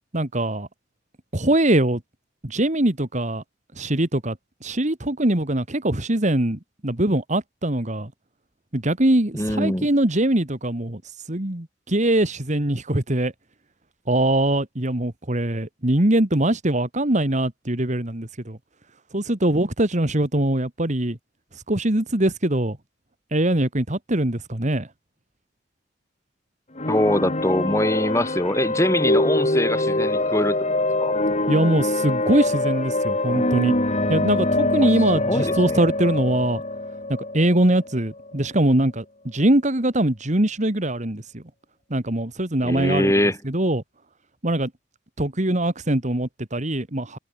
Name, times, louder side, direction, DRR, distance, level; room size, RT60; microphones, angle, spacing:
voice 1, 0.1-0.7 1.3-2.0 2.4-3.4 3.8-8.1 8.7-11.0 11.3-13.3 14.1-18.6 19.1-21.2 21.7-22.8 23.3-24.9 31.5-33.7 34.1-36.6 37.3-41.4 41.9-43.1 43.4-43.8 44.4-44.7 45.2-47.2, right 1 dB, 40° right, 2.2 m, -22 dB
voice 2, 9.3-9.9 26.9-30.6 31.0-31.1 35.3-35.8 42.6-43.4, left 1 dB, 15° left, 4.2 m, -23 dB
sound 1, 26.8-38.4, left 2 dB, 40° left, 3.7 m, -24 dB
head